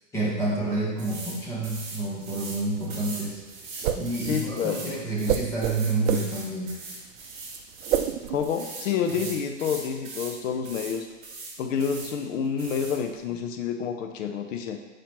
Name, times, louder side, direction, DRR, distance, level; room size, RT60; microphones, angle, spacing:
voice 1, 0.1-3.4 3.9-6.7 13.3-13.4, right 2 dB, 5° left, -7 dB, 1.0 m, -29 dB
sound 1, 1.0-1.4 1.6-2.6 2.9-8.1 8.4-10.4 10.6-11.0 11.2-12.1 12.6-13.0, right 3 dB, 40° right, 2.0 m, -40 dB
sound 2, 1.7-8.5, right 10 dB, 80° right, 0.5 m, -30 dB
voice 2, 4.3-4.8 8.3-11.1 11.6-14.8, left 7 dB, 75° left, 5 dB, 0.8 m, -28 dB
7.4 x 5.0 x 3.0 m, 1.2 s
supercardioid pair, 165°, 39 cm